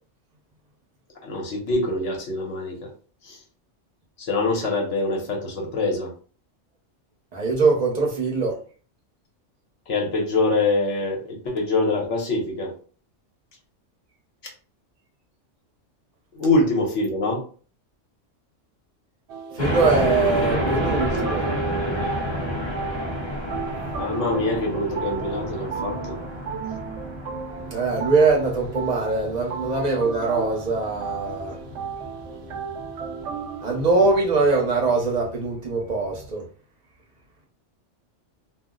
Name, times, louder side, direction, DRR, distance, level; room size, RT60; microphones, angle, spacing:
voice 1, 1.2-2.9 4.2-6.1 9.9-12.7 16.4-17.4 24.0-26.2, left 2 dB, 75° left, 1.1 m, -24 dB
voice 2, 7.3-8.6 19.6-21.5 27.7-31.5 33.6-36.4, right 3 dB, 40° right, 0.8 m, -22 dB
sound 1, 19.3-34.1, right 6 dB, 70° right, 0.8 m, -35 dB
sound 2, 19.6-36.3, equal, 40° left, 0.4 m, -31 dB
2.5 x 2.0 x 3.6 m
omnidirectional pair, 1.3 m